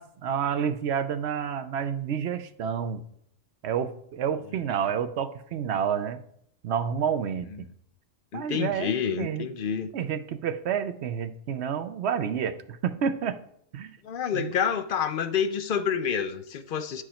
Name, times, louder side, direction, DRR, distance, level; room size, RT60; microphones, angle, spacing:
voice 1, 0.0-3.0 3.6-6.2 6.6-7.7 8.3-9.5 9.9-13.4 13.7-14.0 14.3-14.5, right 8 dB, 65° right, 11 dB, 0.8 m, -29 dB
voice 2, 8.3-9.9 14.0-17.0, left 7 dB, 60° left, 11 dB, 0.5 m, -28 dB
10.5 x 4.8 x 4.3 m, 0.69 s
omnidirectional pair, 1.3 m